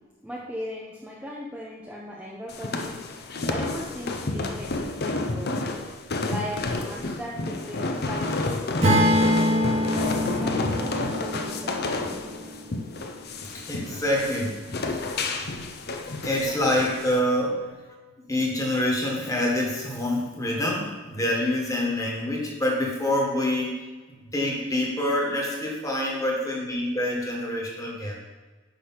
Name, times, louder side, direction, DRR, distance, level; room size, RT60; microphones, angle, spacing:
voice 1, 0.2-3.2 3.5-5.6 6.3-12.3 17.6-17.7, equal, 5° right, -5 dB, 0.8 m, -38 dB
sound 1, 2.5-17.2, left 2 dB, 50° left, 0.7 m, -30 dB
Acoustic guitar / Strum, 8.8-13.0, equal, 35° right, 1.3 m, -25 dB
voice 2, 13.7-14.6 14.9-15.0 15.4-15.5 16.2-17.6 18.3-23.8 24.1-28.2, left 1 dB, 15° left, -2 dB, 1.7 m, -26 dB
10.0 x 3.4 x 5.8 m, 1.3 s
head